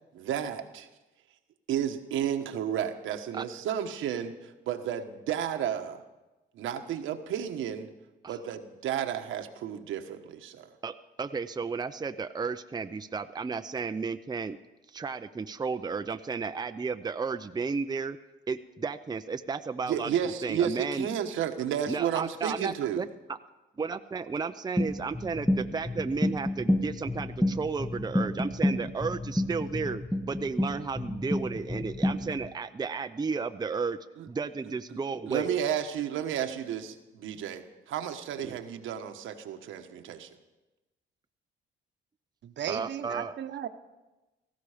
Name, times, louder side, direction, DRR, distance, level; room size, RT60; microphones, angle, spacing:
voice 1, 0.1-0.9 1.7-6.0 6.5-7.9 8.3-10.7 19.9-23.0 34.2-34.3 35.3-40.3, right 9 dB, 85° right, 6 dB, 1.3 m, -32 dB
voice 2, 10.8-14.6 14.9-18.2 18.5-21.1 21.9-23.4 23.8-34.0 34.3-35.5 38.4-38.5 42.7-43.3, right 5 dB, 20° right, 9 dB, 0.6 m, -33 dB
sound 1, 24.8-32.5, left 1 dB, 5° left, 0.9 m, -30 dB
voice 3, 42.4-43.7, right 9 dB, 65° right, 9 dB, 1.1 m, -35 dB
18.0 x 15.0 x 5.0 m, 1.1 s
cardioid pair, 90°, 20 cm